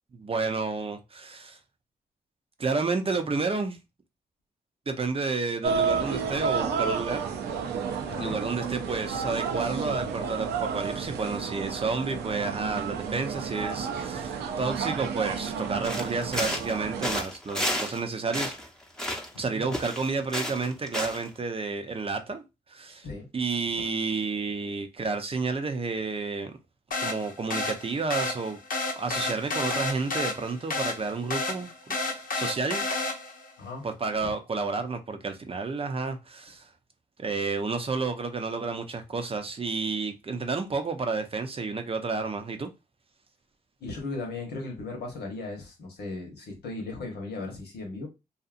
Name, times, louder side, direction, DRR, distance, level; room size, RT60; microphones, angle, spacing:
voice 1, 0.1-1.6 2.6-3.8 4.9-7.2 8.2-18.5 19.4-22.4 22.7-23.1 23.3-26.6 27.0-28.6 29.0-32.8 33.8-36.7 37.2-42.7, right 4 dB, 35° right, 0.5 m, -31 dB
sound 1, 5.6-17.2, right 6 dB, 90° right, 0.4 m, -31 dB
sound 2, 15.8-16.8 17.0-18.0 18.3-19.4 19.7-21.3, equal, 5° left, 0.8 m, -31 dB
sound 3, 26.9-33.5, left 3 dB, 55° left, 0.7 m, -31 dB
voice 2, 43.8-48.1, left 3 dB, 80° left, 1.0 m, -37 dB
2.7 x 2.4 x 2.5 m
cardioid pair, 55°, 17 cm